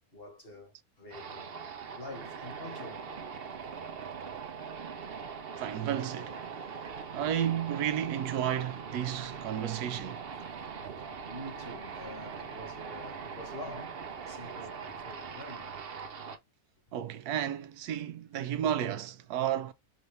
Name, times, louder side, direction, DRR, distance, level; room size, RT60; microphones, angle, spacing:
voice 1, 0.1-1.7 2.0-3.1 3.6-3.8 10.3-14.0 14.3-16.0, left 1 dB, 40° left, 1.9 m, -47 dB
sound 1, 1.1-16.4, right 6 dB, 50° right, 0.8 m, -41 dB
voice 2, 5.6-6.4 7.1-10.3 16.9-19.7, right 10 dB, 85° right, 1.2 m, -32 dB
5.6 x 2.7 x 3.2 m
omnidirectional pair, 1.6 m